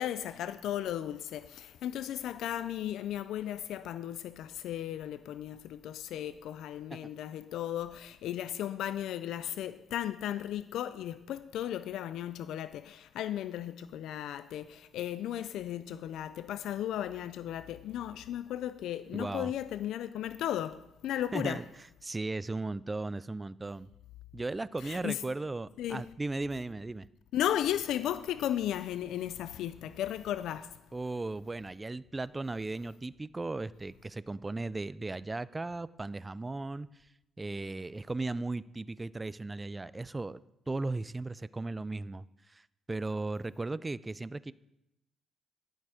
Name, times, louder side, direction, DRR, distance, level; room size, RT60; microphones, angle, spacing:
voice 1, 0.0-21.6 24.8-25.2 25.8-26.0 27.3-30.7, left 11 dB, 80° left, 0.4 m, -35 dB
voice 2, 19.1-19.5 21.3-21.6 22.0-23.9 24.3-27.1 30.9-37.1 37.4-40.4 40.7-44.5, right 2 dB, 20° right, 0.4 m, -36 dB
11.5 x 7.9 x 4.9 m
cardioid pair, 90°, 0 cm